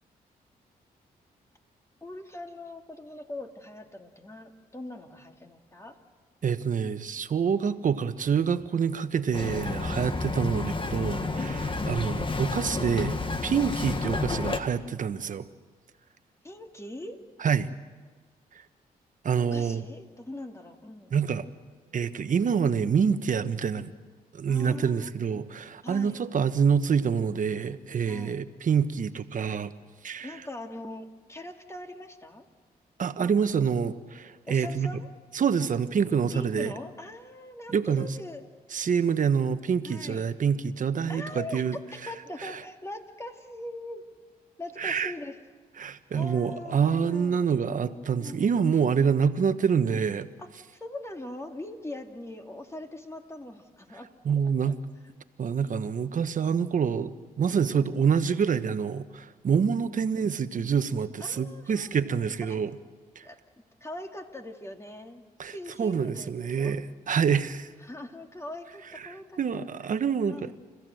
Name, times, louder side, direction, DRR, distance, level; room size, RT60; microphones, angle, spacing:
voice 1, 2.0-6.0 9.9-10.2 13.5-13.8 16.4-17.2 19.5-21.1 24.5-25.1 25.8-26.2 28.1-28.4 30.2-32.5 33.2-33.7 34.4-35.1 36.3-38.5 39.8-40.3 41.1-44.0 44.6-45.4 46.1-47.4 48.2-48.5 50.4-54.7 55.0-55.1 57.5-57.9 59.8-60.1 61.2-62.6 63.2-63.4 63.8-66.8 67.8-69.7 70.3-70.5, left 1 dB, 15° left, 4 dB, 2.7 m, -42 dB
voice 2, 6.4-13.2 13.4-15.5 17.4-17.7 19.2-19.8 21.1-21.5 21.9-23.9 24.3-29.7 30.0-30.3 33.0-34.9 35.3-36.7 37.7-38.1 38.7-41.8 42.4-42.5 44.8-45.1 45.8-50.3 54.2-54.8 55.4-62.7 63.1-63.2 65.4-65.5 65.8-67.7 69.0-70.5, right 6 dB, 55° right, 10 dB, 1.2 m, -26 dB
Bird vocalization bird call bird song, 9.3-14.6, left 3 dB, 30° left, 1.9 m, -30 dB
30.0 x 15.0 x 7.8 m, 1.4 s
cardioid pair, 65°, 16 cm